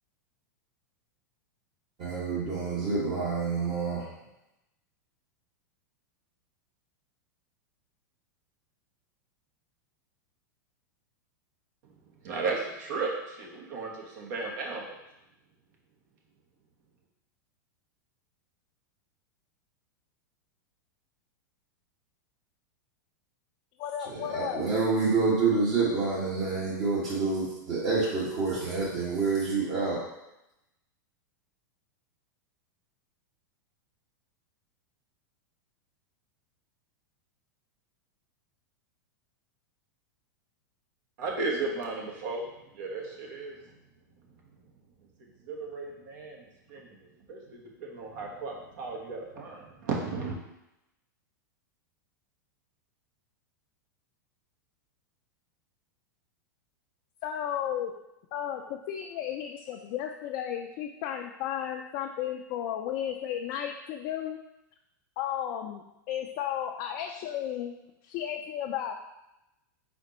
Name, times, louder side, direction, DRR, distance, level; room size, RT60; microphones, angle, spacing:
voice 1, 2.0-4.0 24.1-30.0, right 4 dB, 45° right, -9 dB, 1.6 m, -28 dB
voice 2, 12.2-14.8 41.2-42.5 42.7-43.6 45.5-46.4 46.7-46.9 47.3-50.4, right 3 dB, 65° right, -1 dB, 1.2 m, -34 dB
voice 3, 23.8-24.6 57.2-57.9 58.3-64.4 65.2-67.7 68.0-68.9, left 10 dB, 50° left, 2 dB, 0.4 m, -34 dB
4.2 x 4.1 x 3.0 m, 0.90 s
hypercardioid pair, 105°, 11 cm